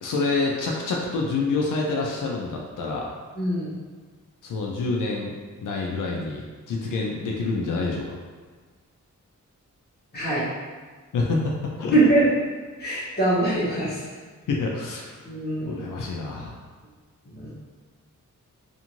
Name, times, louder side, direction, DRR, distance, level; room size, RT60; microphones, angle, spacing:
voice 1, 0.0-3.1 4.4-8.2 11.1-12.0 14.5-15.1 15.6-16.6, left 3 dB, 85° left, -2 dB, 0.5 m, -27 dB
voice 2, 3.4-3.7 10.1-10.5 11.9-12.3 12.8-14.0 15.2-15.8 17.3-17.4, right 2 dB, 35° left, -8 dB, 0.9 m, -22 dB
2.6 x 2.5 x 2.9 m, 1.5 s
wide cardioid pair, 175°, 31 cm